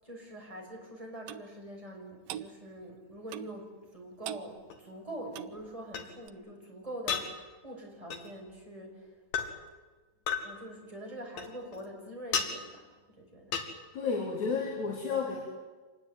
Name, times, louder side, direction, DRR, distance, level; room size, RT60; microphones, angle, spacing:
voice 1, 0.0-9.1 10.4-13.6, right 1 dB, 10° right, 0 dB, 5.9 m, -44 dB
Clock, 1.3-1.5 2.3-2.5 3.3-3.6 4.2-4.5 5.3-5.6 6.3-6.4, right 12 dB, 70° right, 2.4 m, -41 dB
sound 1, 4.7-4.8 5.9-6.0 7.1-7.3 8.1-8.3 9.3-9.5 10.3-10.4 11.4-11.8 12.3-12.5 13.5-13.7, left 7 dB, 65° left, 3.9 m, -32 dB
voice 2, 13.9-15.4, left 5 dB, 45° left, -1 dB, 4.9 m, -31 dB
26.0 x 20.0 x 9.4 m, 1.3 s
omnidirectional pair, 4.7 m